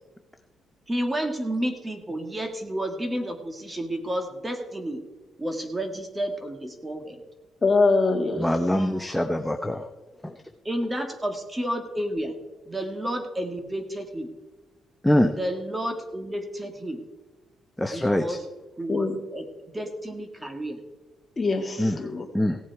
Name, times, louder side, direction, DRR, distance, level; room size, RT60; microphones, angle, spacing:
voice 1, 0.9-5.0 5.4-7.2 10.6-12.3 12.6-14.3 15.3-17.0 17.9-18.4 18.8-19.4 19.7-20.8, right 1 dB, 15° right, 5 dB, 1.8 m, -31 dB
voice 2, 7.6-8.4 18.9-19.2 21.4-22.3, left 3 dB, 30° left, 3 dB, 2.0 m, -23 dB
voice 3, 8.4-9.8 10.2-10.3 15.0-15.3 17.8-18.4 21.8-22.0 22.3-22.6, left 1 dB, 5° left, 5 dB, 0.8 m, -23 dB
17.0 x 7.5 x 4.7 m, 1.2 s
cardioid pair, 90°, 0 cm